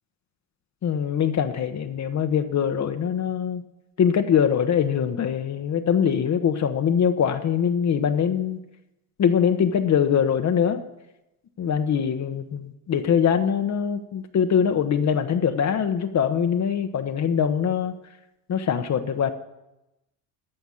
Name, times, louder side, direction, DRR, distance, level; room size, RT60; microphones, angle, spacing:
voice 1, 0.8-3.6 4.0-8.6 9.2-10.8 11.6-17.9 18.5-19.3, left 8 dB, 35° left, 6 dB, 1.0 m, -23 dB
14.5 x 5.8 x 9.8 m, 0.93 s
hypercardioid pair, 75°, 46 cm